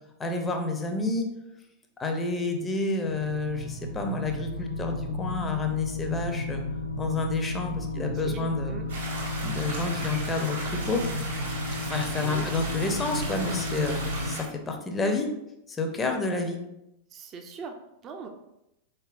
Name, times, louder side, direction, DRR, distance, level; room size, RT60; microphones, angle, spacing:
voice 1, 0.2-1.3 2.0-6.6 7.0-8.8 9.4-11.0 11.8-15.3 15.7-16.6, left 3 dB, 15° left, 4 dB, 0.5 m, -29 dB
sound 1, 3.0-14.3, left 2 dB, 85° left, 0.3 m, -33 dB
voice 2, 7.9-8.9 12.2-12.5 17.1-18.3, right 5 dB, 30° right, 4 dB, 0.4 m, -40 dB
sound 2, 8.9-14.4, right 2 dB, 65° right, 1.3 m, -37 dB
4.2 x 3.4 x 2.5 m, 0.86 s
figure-of-eight pair, 90°, 0 cm